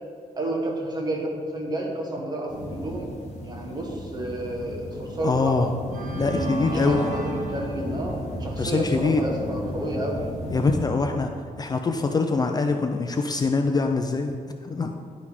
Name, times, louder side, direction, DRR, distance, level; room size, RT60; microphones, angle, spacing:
voice 1, 0.4-3.1 3.4-5.6 6.7-10.3, right 1 dB, 30° right, 0 dB, 1.4 m, -30 dB
sound 1, 2.5-10.8, equal, 50° left, 1.9 m, -35 dB
sound 2, 4.8-5.0 5.7-8.5, right 1 dB, 65° right, 1.9 m, -32 dB
voice 2, 5.2-5.7 6.2-7.0 8.6-9.2 10.5-11.3 11.6-14.4 14.6-14.9, left 4 dB, 25° left, 4 dB, 0.4 m, -24 dB
11.0 x 5.2 x 5.0 m, 2.1 s
wide cardioid pair, 150°, 14 cm